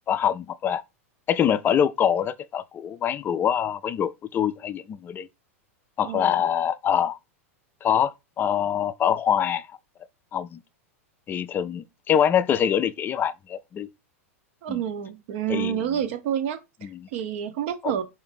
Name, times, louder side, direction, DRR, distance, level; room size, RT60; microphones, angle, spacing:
voice 1, 0.1-0.8 1.3-5.3 6.0-7.2 7.8-9.7 10.3-10.6 11.3-13.9 14.7-14.8 15.5-16.0 16.8-17.1 17.8-18.0, left 9 dB, 25° left, 0.3 m, -24 dB
voice 2, 6.1-6.4 14.6-18.0, right 9 dB, 60° right, 0.7 m, -29 dB
4.6 x 2.6 x 3.6 m
hypercardioid pair, 105°, 8 cm